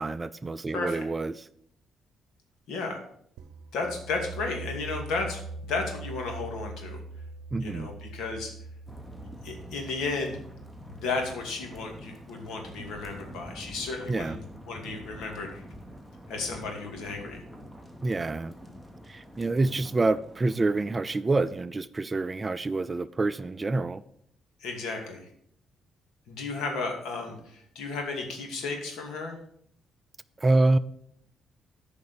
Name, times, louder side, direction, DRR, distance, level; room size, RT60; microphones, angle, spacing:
voice 1, 0.0-1.5 7.5-7.9 14.1-14.4 18.0-18.5 19.1-24.0 30.4-30.8, right 2 dB, 25° right, 0.4 m, -27 dB
voice 2, 2.7-3.0 3.7-7.0 7.6-8.5 9.4-10.4 10.8-14.4 14.7-15.6 16.3-17.4 24.6-25.3 26.3-29.4, left 3 dB, 80° left, 2.4 m, -33 dB
sound 1, 3.4-13.0, right 3 dB, 90° right, 0.7 m, -43 dB
sound 2, 8.9-21.1, equal, 5° left, 1.2 m, -46 dB
9.4 x 5.3 x 6.9 m
cardioid pair, 90°, 0 cm